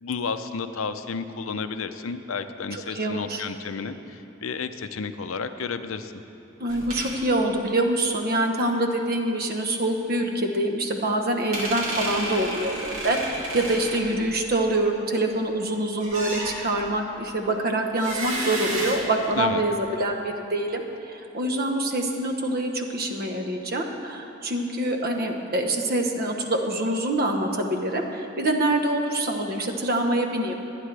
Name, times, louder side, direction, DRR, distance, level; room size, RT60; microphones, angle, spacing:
voice 1, 0.0-6.1 19.4-19.6, left 5 dB, 70° left, 10 dB, 0.6 m, -31 dB
voice 2, 2.7-3.5 6.6-12.8 13.0-20.8 21.1-30.5, right 1 dB, 45° right, 3 dB, 1.0 m, -25 dB
sound 1, 6.7-7.2 11.5-14.8 16.0-16.9 17.9-19.7, right 1 dB, 85° right, 2.6 m, -32 dB
24.5 x 9.3 x 3.3 m, 2.9 s
head